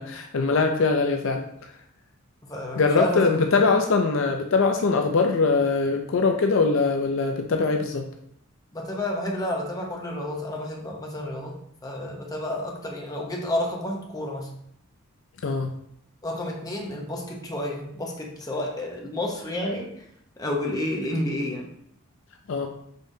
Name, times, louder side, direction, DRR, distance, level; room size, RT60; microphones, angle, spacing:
voice 1, 0.0-1.4 2.8-8.0 15.4-15.7 22.5-22.7, left 4 dB, 60° left, 4 dB, 0.4 m, -22 dB
voice 2, 2.4-3.8 8.7-14.5 16.2-20.0 20.4-21.7, left 1 dB, 15° left, -1 dB, 0.7 m, -30 dB
5.3 x 3.3 x 2.6 m, 0.71 s
head